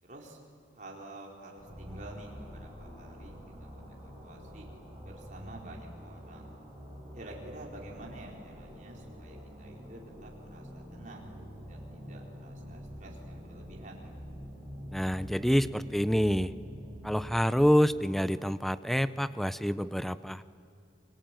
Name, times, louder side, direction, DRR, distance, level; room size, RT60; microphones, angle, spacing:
voice 1, 0.0-0.4 0.8-4.7 5.0-6.6 7.1-11.3 11.7-14.1, right 1 dB, 45° right, -1 dB, 4.3 m, -49 dB
sound 1, 1.6-17.8, equal, 15° right, 6.3 m, -46 dB
voice 2, 14.9-16.5 17.0-20.4, equal, ahead, 15 dB, 0.5 m, -27 dB
28.5 x 22.0 x 9.1 m, 2.5 s
head